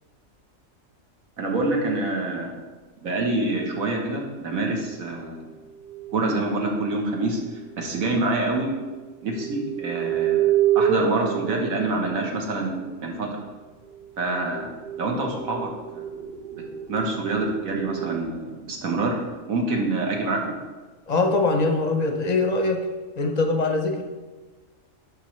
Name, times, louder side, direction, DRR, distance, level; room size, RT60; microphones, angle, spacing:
voice 1, 1.4-2.5 3.0-5.5 6.1-7.4 7.8-8.7 9.2-13.3 14.2-14.7 15.0-16.1 16.5-16.6 16.9-19.1 19.5-20.5, right 2 dB, 80° right, 1 dB, 1.5 m, -26 dB
sound 1, 4.6-6.3 7.8-7.9 9.3-12.9 13.8-18.2, right 9 dB, 65° right, 0.6 m, -28 dB
voice 2, 21.1-22.8 23.2-24.0, left 3 dB, 40° left, 4 dB, 0.6 m, -22 dB
11.0 x 4.9 x 3.1 m, 1.3 s
omnidirectional pair, 1.4 m